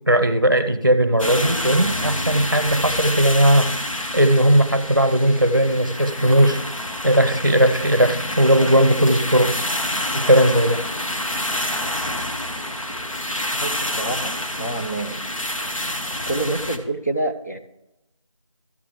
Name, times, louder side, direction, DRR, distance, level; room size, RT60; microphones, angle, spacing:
voice 1, 0.0-3.7 4.1-6.6 7.0-9.6 10.1-10.8, right 1 dB, 40° right, 12 dB, 0.7 m, -17 dB
sound 1, 1.2-16.8, left 1 dB, 80° left, 1.4 m, -28 dB
voice 2, 13.6-15.3 16.3-17.6, right 2 dB, 30° left, 3 dB, 0.7 m, -27 dB
13.5 x 7.1 x 3.3 m, 0.89 s
figure-of-eight pair, 180°, 17 cm